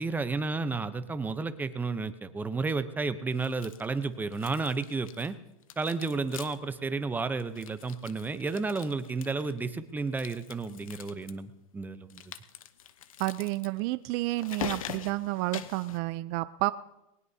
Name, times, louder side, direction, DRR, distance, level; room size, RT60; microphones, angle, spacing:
voice 1, 0.0-5.4 5.8-12.3, right 3 dB, 10° right, 12 dB, 0.7 m, -32 dB
sound 1, 3.4-4.0 4.3-5.4 5.6-6.7 7.0-7.1 7.4-9.6 10.1-11.3 12.1-16.0, left 10 dB, 80° left, 0.9 m, -43 dB
voice 2, 13.2-16.7, right 19 dB, 45° right, 15 dB, 0.4 m, -30 dB
20.5 x 19.0 x 2.8 m, 0.89 s
hypercardioid pair, 130°, 17 cm